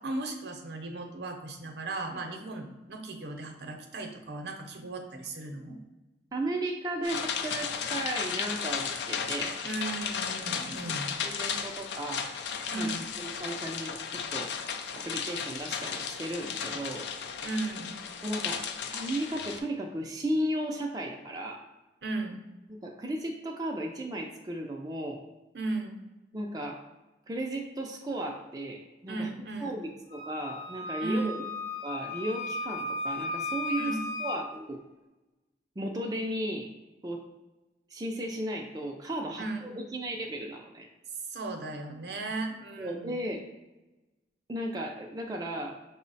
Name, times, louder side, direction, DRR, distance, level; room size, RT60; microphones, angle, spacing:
voice 1, 0.0-5.8 9.6-11.1 12.7-13.1 17.4-18.0 22.0-22.4 25.5-26.0 29.1-29.8 31.0-31.4 33.8-34.1 39.4-39.7 41.3-43.2, right 2 dB, 70° right, 4 dB, 0.6 m, -36 dB
voice 2, 6.3-9.6 10.8-10.9 11.2-12.3 12.7-13.9 14.3-17.1 18.2-18.6 18.9-21.6 22.7-25.2 26.3-26.8 27.3-29.3 29.6-31.4 31.8-34.8 35.8-36.7 37.0-37.3 37.9-40.9 42.8-43.5 44.5-45.8, right 1 dB, 20° right, 1 dB, 0.3 m, -35 dB
sound 1, 7.0-19.6, left 6 dB, 85° left, 0.4 m, -34 dB
Wind instrument woodwind instrument, 30.1-34.4, left 2 dB, 40° left, 0.6 m, -35 dB
5.3 x 2.0 x 4.0 m, 1.1 s
head